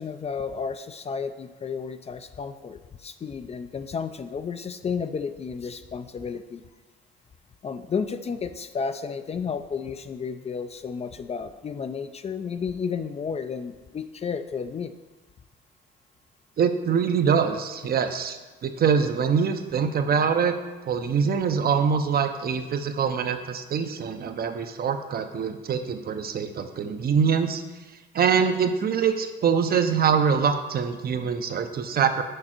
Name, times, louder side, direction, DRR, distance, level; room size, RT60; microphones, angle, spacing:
voice 1, 0.0-6.6 7.6-14.9, left 6 dB, 30° left, 10 dB, 0.4 m, -32 dB
voice 2, 16.6-18.4 18.6-20.5 20.8-27.6 28.1-32.2, right 6 dB, 50° right, 8 dB, 0.6 m, -24 dB
6.6 x 5.2 x 4.4 m, 1.2 s
cardioid pair, 90°, 20 cm